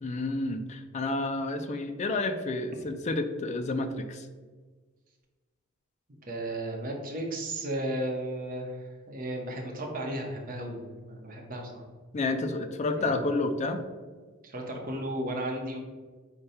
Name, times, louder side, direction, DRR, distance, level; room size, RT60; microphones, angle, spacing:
voice 1, 0.0-4.3 12.1-13.8, left 2 dB, 35° left, 8 dB, 0.3 m, -30 dB
voice 2, 6.3-11.8 13.0-13.1 14.4-15.8, right 1 dB, 45° right, 1 dB, 0.8 m, -34 dB
5.0 x 2.2 x 4.2 m, 1.4 s
head